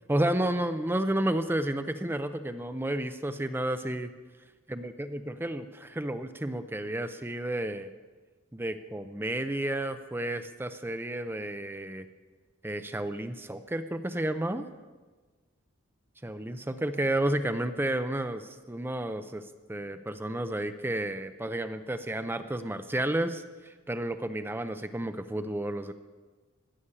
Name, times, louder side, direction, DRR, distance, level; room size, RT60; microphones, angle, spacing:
voice 1, 0.1-4.1 4.7-7.9 8.5-12.1 12.6-14.7 16.2-25.9, right 1 dB, 10° right, 10 dB, 0.6 m, -31 dB
16.5 x 7.2 x 9.8 m, 1.3 s
head